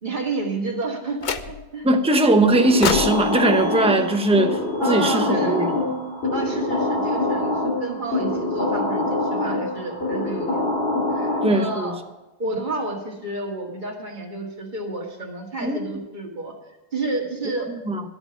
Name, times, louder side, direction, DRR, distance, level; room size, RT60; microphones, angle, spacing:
voice 1, 0.0-1.9 4.8-5.7 6.3-10.6 11.1-12.0 12.4-16.5 16.9-17.7, right 2 dB, 50° right, -1 dB, 2.2 m, -30 dB
sound 1, 1.2-1.9 2.8-5.1, left 6 dB, 55° left, 0.8 m, -30 dB
voice 2, 1.8-4.6 4.9-6.0 11.4-12.0 15.6-15.8 17.9-18.0, right 2 dB, 5° right, 5 dB, 0.8 m, -20 dB
sound 2, 2.4-11.9, left 2 dB, 85° left, 3.3 m, -25 dB
11.5 x 8.8 x 6.9 m, 1.0 s
omnidirectional pair, 1.0 m